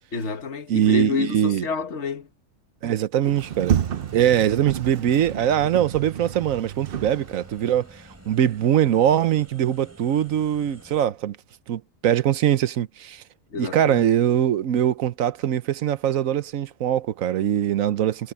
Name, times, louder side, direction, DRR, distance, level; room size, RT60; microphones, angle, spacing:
voice 1, 0.1-2.3 13.5-14.0, left 4 dB, 60° left, 1.8 m, -28 dB
voice 2, 0.7-1.7 2.8-3.8 4.1-11.4 11.7-13.2 13.6-18.3, right 10 dB, 85° right, 1.2 m, -22 dB
Sliding door, 3.2-7.7, right 9 dB, 55° right, 0.7 m, -30 dB
sound 1, 3.3-11.1, equal, 10° right, 4.6 m, -48 dB
omnidirectional pair, 1.4 m